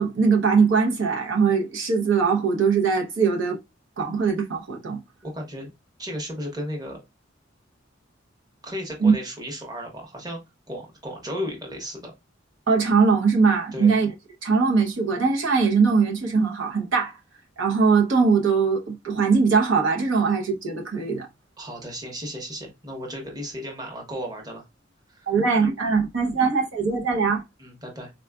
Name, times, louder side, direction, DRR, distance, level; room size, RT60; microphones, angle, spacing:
voice 1, 0.0-3.6 4.0-5.0 9.0-9.1 12.7-14.1 14.4-17.1 17.6-21.3 25.3-27.4, right 5 dB, 85° right, 0.8 m, -21 dB
voice 2, 5.2-5.7 6.0-7.0 8.6-10.4 10.7-12.1 13.7-14.0 21.6-24.6 25.1-25.3 27.6-28.1, equal, 20° right, 0.9 m, -34 dB
3.8 x 2.3 x 2.2 m
head